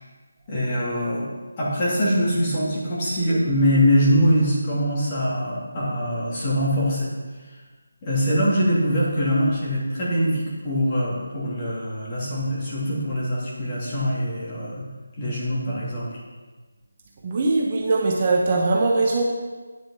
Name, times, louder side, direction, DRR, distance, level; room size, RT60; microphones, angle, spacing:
voice 1, 0.5-1.3 1.6-7.1 8.0-14.8 15.2-16.1, equal, 20° left, -7 dB, 2.8 m, -23 dB
voice 2, 17.2-19.2, right 3 dB, 25° right, -1 dB, 1.0 m, -21 dB
9.5 x 7.8 x 5.7 m, 1.3 s
figure-of-eight pair, 170°, 0 cm